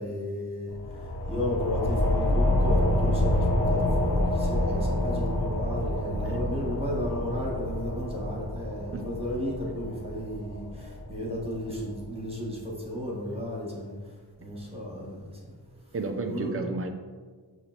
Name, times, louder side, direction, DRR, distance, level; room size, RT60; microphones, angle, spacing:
voice 1, 0.0-14.0 14.4-15.5 16.3-16.5, left 1 dB, 15° right, -4 dB, 1.3 m, -34 dB
sound 1, 0.7-11.9, left 1 dB, 35° left, 0.9 m, -28 dB
voice 2, 15.9-16.9, right 3 dB, 35° right, 5 dB, 0.5 m, -32 dB
6.3 x 2.9 x 2.9 m, 1.5 s
wide cardioid pair, 90°, 41 cm